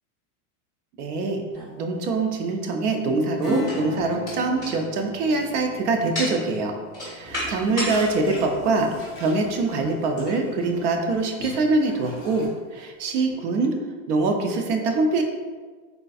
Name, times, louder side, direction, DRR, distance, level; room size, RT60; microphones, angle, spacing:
voice 1, 1.0-1.4 1.8-6.7 7.0-13.8 14.1-15.2, right 3 dB, 90° right, 4 dB, 0.6 m, -24 dB
sound 1, 1.5-2.6 3.2-8.0 8.6-8.7 9.8-10.0 10.3-10.5 11.4-11.6 12.4-12.5 13.3-13.4, left 1 dB, 10° right, 0.5 m, -34 dB
Acoustic guitar / Strum, 3.4-9.6 10.0-10.1, equal, 35° right, 0.9 m, -36 dB
sound 2, 7.2-12.5, equal, 15° left, 1.0 m, -43 dB
3.7 x 2.5 x 2.3 m, 1.4 s
supercardioid pair, 175°, 46 cm